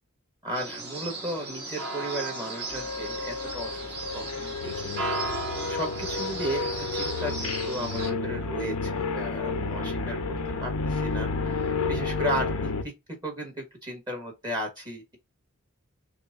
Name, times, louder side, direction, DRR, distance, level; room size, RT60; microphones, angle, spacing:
voice 1, 0.4-5.1 5.7-10.2 10.6-12.9 13.2-15.2, right 1 dB, 20° right, 1.5 m, -35 dB
sound 1, 0.5-8.1, right 2 dB, 50° right, 1.9 m, -35 dB
sound 2, 2.7-12.8, left 4 dB, 80° left, 0.8 m, -31 dB
5.9 x 2.2 x 2.5 m
head